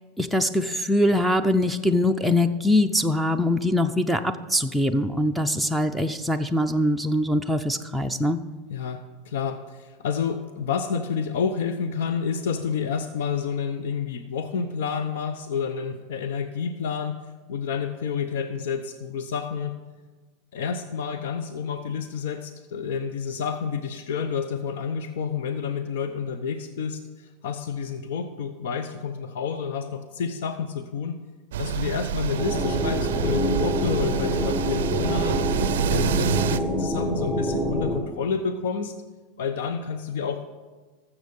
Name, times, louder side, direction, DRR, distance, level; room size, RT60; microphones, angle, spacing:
voice 1, 0.2-8.4, left 1 dB, ahead, 10 dB, 0.5 m, -23 dB
voice 2, 8.7-17.2 17.5-19.8 20.5-31.2 31.6-39.0 39.4-40.4, left 6 dB, 80° left, 9 dB, 0.7 m, -29 dB
sound 1, 31.5-36.6, right 10 dB, 85° right, 0.4 m, -27 dB
sound 2, 32.4-38.0, equal, 25° left, 1.7 m, -26 dB
13.5 x 7.2 x 5.3 m, 1.3 s
supercardioid pair, 130°, 0 cm